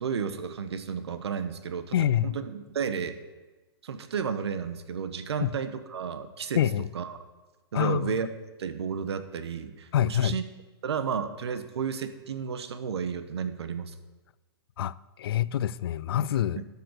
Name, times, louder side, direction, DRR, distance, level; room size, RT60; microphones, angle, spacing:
voice 1, 0.0-3.2 3.8-6.6 6.9-7.2 7.7-8.3 8.6-10.4 10.8-13.9 16.6-16.7, right 6 dB, 90° right, 1.1 m, -32 dB
voice 2, 1.9-2.3 5.4-5.5 6.6-6.8 7.7-8.1 9.9-10.3 14.8-16.6, left 10 dB, 65° left, 0.4 m, -26 dB
12.0 x 6.8 x 6.5 m
hypercardioid pair, 160°, 13 cm